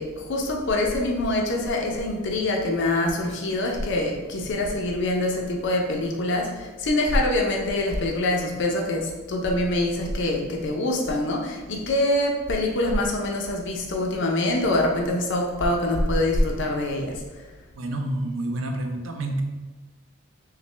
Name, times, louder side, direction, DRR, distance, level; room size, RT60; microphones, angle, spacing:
voice 1, 0.0-17.2, left 1 dB, 60° left, 0 dB, 0.6 m, -24 dB
voice 2, 17.7-19.4, right 1 dB, 75° right, 4 dB, 0.5 m, -28 dB
5.6 x 2.1 x 3.2 m, 1.3 s
head